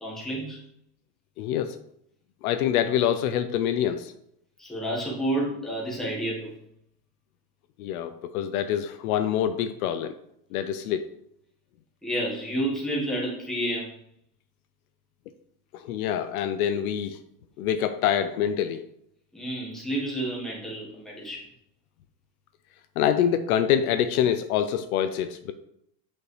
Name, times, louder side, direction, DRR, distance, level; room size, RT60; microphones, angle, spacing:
voice 1, 0.0-0.6 4.6-6.5 12.0-14.0 19.3-21.4, right 1 dB, ahead, -4 dB, 1.3 m, -30 dB
voice 2, 1.4-1.8 2.4-4.1 7.8-10.1 10.5-11.0 15.7-17.2 17.6-18.8 23.0-25.5, left 9 dB, 65° left, 10 dB, 0.6 m, -25 dB
8.7 x 5.3 x 3.2 m, 0.75 s
supercardioid pair, 170°, 48 cm